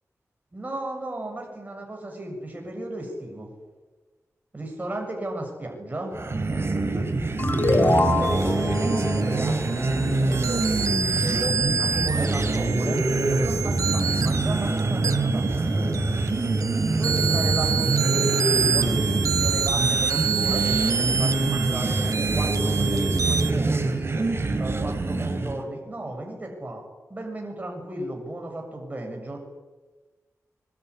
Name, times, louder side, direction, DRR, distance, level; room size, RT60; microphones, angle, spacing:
voice 1, 0.5-3.5 4.5-6.1 7.7-11.4 11.8-15.8 16.9-22.0 22.4-24.2 24.5-26.8 27.1-29.4, right 1 dB, 30° right, 1 dB, 7.2 m, -34 dB
sound 1, 6.1-25.6, right 3 dB, 45° right, 4.3 m, -25 dB
sound 2, 7.4-10.6, left 2 dB, 35° left, 3.6 m, -26 dB
sound 3, 8.2-23.5, right 6 dB, 85° right, 1.3 m, -28 dB
25.5 x 23.0 x 9.9 m, 1.2 s
wide cardioid pair, 95°, 6 cm